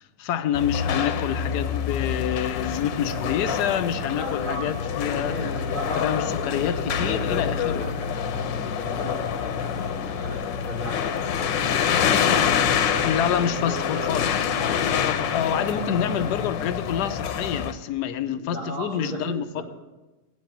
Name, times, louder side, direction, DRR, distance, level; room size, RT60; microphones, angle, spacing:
voice 1, 0.2-5.4 6.0-7.9 13.0-14.3 14.8-19.6, left 9 dB, 70° left, 12 dB, 1.2 m, -27 dB
sound 1, 0.5-17.7, left 7 dB, 85° left, 1.4 m, -26 dB
voice 2, 3.0-4.7 5.1-7.4 7.7-14.2 15.3-15.7 15.9-16.3 18.2-19.6, equal, 45° right, -2 dB, 2.8 m, -37 dB
9.1 x 7.5 x 8.8 m, 1.1 s
omnidirectional pair, 1.9 m